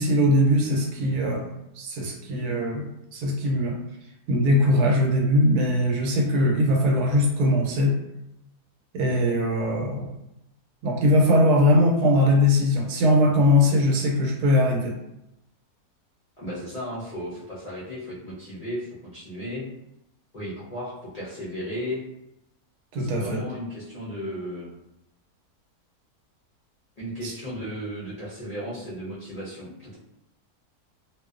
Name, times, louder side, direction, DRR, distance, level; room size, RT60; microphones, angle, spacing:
voice 1, 0.0-1.5 1.8-2.9 3.1-3.8 4.3-7.9 8.9-10.1 10.8-14.9 22.9-23.4 27.2-27.3, left 1 dB, 85° right, 0 dB, 1.1 m, -21 dB
voice 2, 16.4-19.6 20.3-22.0 23.0-24.7 27.0-30.0, equal, 65° left, -10 dB, 0.3 m, -35 dB
2.6 x 2.1 x 2.4 m, 0.87 s
omnidirectional pair, 1.6 m